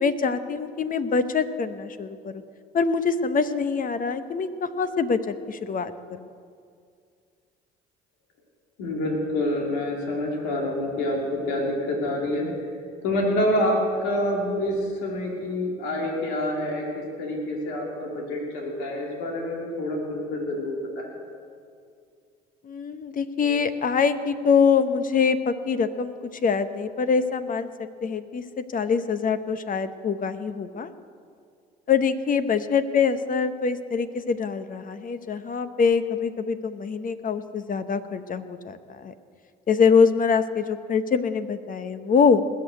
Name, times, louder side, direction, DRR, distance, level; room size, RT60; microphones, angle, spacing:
voice 1, 0.0-2.4 2.7-6.3 22.6-30.9 31.9-39.1 39.7-42.6, left 5 dB, 40° left, 11 dB, 1.0 m, -24 dB
voice 2, 8.8-12.5 13.0-21.1, left 1 dB, 80° left, -1 dB, 2.6 m, -27 dB
20.0 x 6.7 x 8.0 m, 2.2 s
hypercardioid pair, 60°, 20 cm